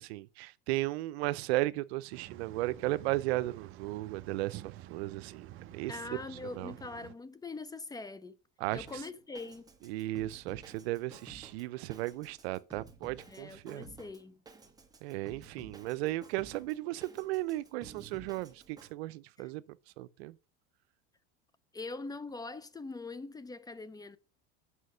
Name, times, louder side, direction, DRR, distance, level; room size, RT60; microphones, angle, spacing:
voice 1, 0.0-5.5 5.7-6.0 6.6-6.7 8.6-9.0 9.8-13.9 15.0-20.4, right 18 dB, 85° right, 0.6 m, -35 dB
sound 1, 2.1-7.1, right 14 dB, 40° right, 0.6 m, -49 dB
voice 2, 5.9-8.4 8.7-9.7 13.3-14.4 19.4-19.5 21.7-24.2, left 3 dB, 10° left, 0.5 m, -43 dB
Drum kit, 8.7-18.9, right 3 dB, 10° right, 1.1 m, -54 dB
6.3 x 5.6 x 6.3 m
supercardioid pair, 120°, 30 cm